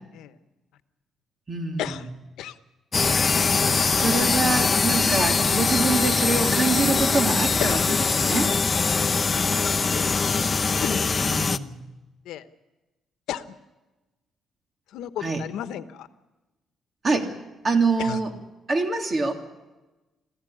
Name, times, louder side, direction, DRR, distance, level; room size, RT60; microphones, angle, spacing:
voice 1, 1.5-1.8 3.8-7.8 8.2-8.5 11.2-11.8 15.2-15.4 17.0-17.3 17.6-18.3 18.7-19.3, right 3 dB, 40° right, 4 dB, 3.1 m, -25 dB
sound 1, 2.9-11.6, left 4 dB, 30° left, 0.8 m, -22 dB
voice 2, 7.6-7.9 9.4-10.1 10.8-11.0 12.2-12.4 13.3-13.6 14.9-16.1 18.0-18.2, left 11 dB, 85° left, 11 dB, 1.1 m, -34 dB
22.5 x 15.5 x 10.0 m, 1.1 s
cardioid pair, 90°, 0 cm